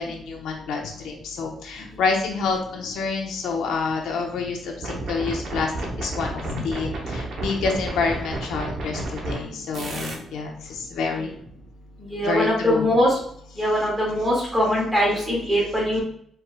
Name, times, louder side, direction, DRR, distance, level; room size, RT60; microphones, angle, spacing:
voice 1, 0.0-5.7 6.0-11.3 12.2-12.9, left 4 dB, 80° left, 1 dB, 0.9 m, -28 dB
sound 1, 4.8-9.4 9.7-10.2, right 2 dB, 50° right, 1.0 m, -31 dB
voice 2, 12.1-13.2 13.6-16.0, equal, 5° right, -5 dB, 2.0 m, -22 dB
4.8 x 4.6 x 2.3 m, 0.64 s
cardioid pair, 175°, 0 cm